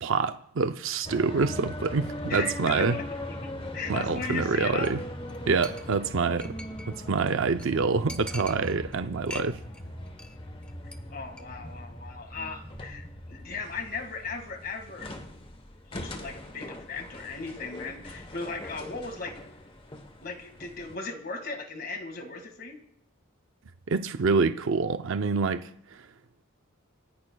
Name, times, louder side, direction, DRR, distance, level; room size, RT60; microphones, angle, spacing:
voice 1, 0.0-3.0 3.9-5.0 5.5-6.6 6.9-9.6 23.9-26.1, right 4 dB, 60° right, 0.5 m, -26 dB
sound 1, 1.0-21.0, left 1 dB, 25° left, 1.0 m, -40 dB
voice 2, 2.3-4.9 11.1-15.1 15.9-19.4 20.2-22.8, left 4 dB, 45° left, 2.0 m, -37 dB
Chink clink, 4.8-5.0 5.3-5.4 5.6-7.0 7.3-7.4 7.6-7.7 8.1-9.0 9.3-9.8 10.1-10.4 10.6-11.0 11.3-11.4, left 1 dB, 5° left, 0.7 m, -43 dB
28.0 x 15.5 x 2.3 m
head